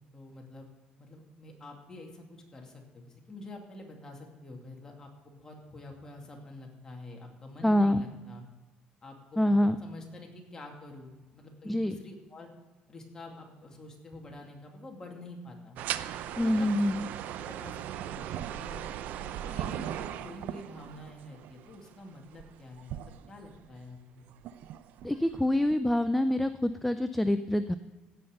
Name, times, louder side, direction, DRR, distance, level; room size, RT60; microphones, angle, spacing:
voice 1, 0.1-0.7 1.0-8.4 9.0-12.5 12.9-15.8 16.3-16.7 17.0-17.1 17.4-18.8 19.2-24.3, left 2 dB, 20° left, 0 dB, 2.4 m, -47 dB
voice 2, 7.6-8.0 9.4-9.8 11.7-12.0 16.4-17.1 25.0-27.7, left 1 dB, 5° left, 10 dB, 0.4 m, -26 dB
sound 1, 15.8-23.8 24.3-25.8, right 11 dB, 65° right, 0.5 m, -38 dB
16.0 x 5.7 x 6.6 m, 1.2 s
cardioid pair, 120°, 3 cm